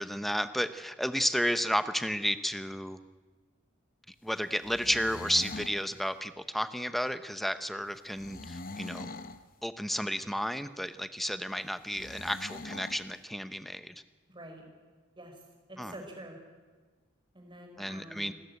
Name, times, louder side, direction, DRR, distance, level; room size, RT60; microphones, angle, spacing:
voice 1, 0.0-3.0 4.1-9.2 9.6-14.0 15.8-15.9 17.8-18.3, equal, ahead, 12 dB, 0.8 m, -32 dB
sound 1, 4.5-5.8 8.1-9.4 11.9-13.0, left 2 dB, 40° left, 1.1 m, -42 dB
voice 2, 14.3-14.6 15.2-15.4 15.7-16.4 17.3-18.3, right 1 dB, 25° right, 3 dB, 4.8 m, -47 dB
28.0 x 13.5 x 9.6 m, 1.4 s
head